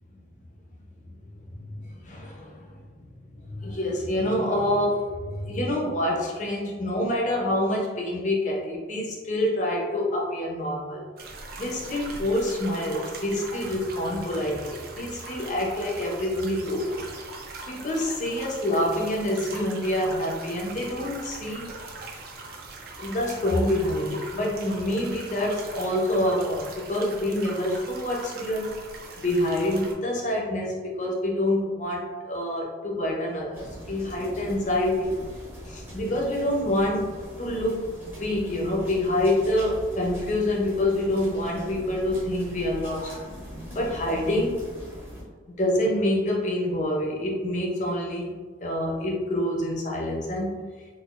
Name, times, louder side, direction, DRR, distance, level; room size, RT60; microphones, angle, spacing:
voice 1, 1.6-2.8 3.4-11.1 11.6-17.1 17.7-21.7 23.0-28.8 29.2-35.2 35.7-43.3 43.7-44.7 45.5-48.3 48.6-50.6, left 1 dB, 40° left, -2 dB, 0.7 m, -27 dB
sound 1, 11.2-29.9, right 3 dB, 50° right, 0.5 m, -41 dB
sound 2, 33.5-45.2, equal, 10° right, 0.7 m, -41 dB
4.0 x 2.4 x 2.4 m, 1.5 s
head